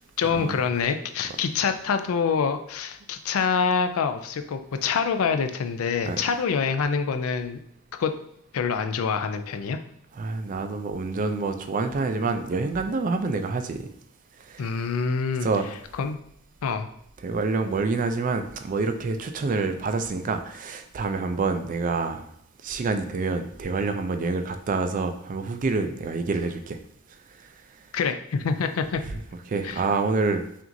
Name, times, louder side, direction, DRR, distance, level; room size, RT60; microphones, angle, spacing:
voice 1, 0.2-7.6 8.0-8.1 8.5-9.8 14.6-15.5 16.0-16.2 16.6-16.9 27.9-29.0 29.6-29.8, left 5 dB, 75° left, 0.4 m, -26 dB
voice 2, 10.1-13.9 14.4-14.9 15.4-15.7 17.2-22.3 22.6-26.8 27.4-27.5 29.1-29.2 29.5-30.4, right 3 dB, 40° right, 0.4 m, -27 dB
5.8 x 2.5 x 2.6 m
head